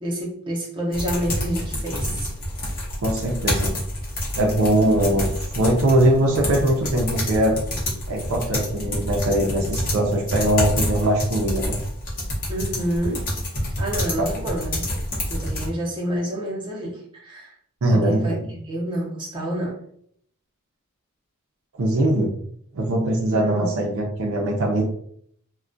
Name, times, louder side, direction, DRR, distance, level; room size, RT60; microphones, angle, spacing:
voice 1, 0.0-2.3 12.5-13.2 13.8-14.9 15.3-17.5 17.9-19.7 23.3-23.7, right 1 dB, 20° right, -4 dB, 0.6 m, -28 dB
sound 1, 0.9-15.7, left 1 dB, 40° left, 0.8 m, -28 dB
voice 2, 3.0-3.8 4.3-7.6 8.1-11.8 14.2-14.3 17.8-18.5 21.8-22.3 22.7-24.8, right 1 dB, 60° right, 0 dB, 0.5 m, -21 dB
2.3 x 2.2 x 2.5 m, 0.65 s
head